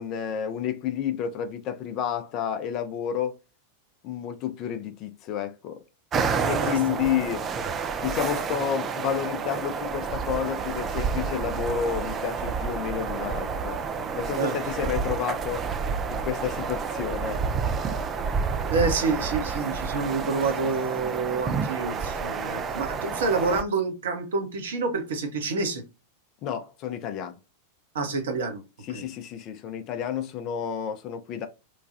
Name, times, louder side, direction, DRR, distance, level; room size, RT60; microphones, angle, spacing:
voice 1, 0.0-3.3 4.0-5.8 6.5-7.4 8.0-13.8 14.1-15.6 16.1-17.4 26.4-27.3 28.8-31.5, left 8 dB, 40° left, 0.5 m, -30 dB
sound 1, 6.1-23.6, right 5 dB, 25° right, 0.3 m, -29 dB
voice 2, 6.4-6.8 14.4-14.6 18.7-25.8 27.9-28.6 28.9-29.0, right 4 dB, 60° right, 0.8 m, -28 dB
3.1 x 2.2 x 2.5 m
figure-of-eight pair, 90°, 0 cm